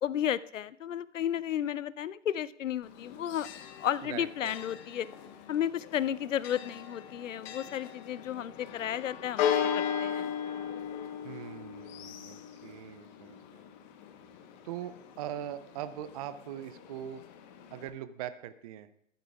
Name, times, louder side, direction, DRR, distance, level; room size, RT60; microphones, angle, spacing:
voice 1, 0.0-3.5 3.8-5.1 5.5-10.3, left 10 dB, 75° left, 19 dB, 0.6 m, -33 dB
Church bell, 2.8-17.9, left 8 dB, 35° left, 1.1 m, -38 dB
voice 2, 4.0-4.8 11.2-13.6 14.6-17.2 17.7-19.1, right 11 dB, 30° right, 14 dB, 0.4 m, -41 dB
13.5 x 11.5 x 2.4 m, 0.70 s
figure-of-eight pair, 115°, 38 cm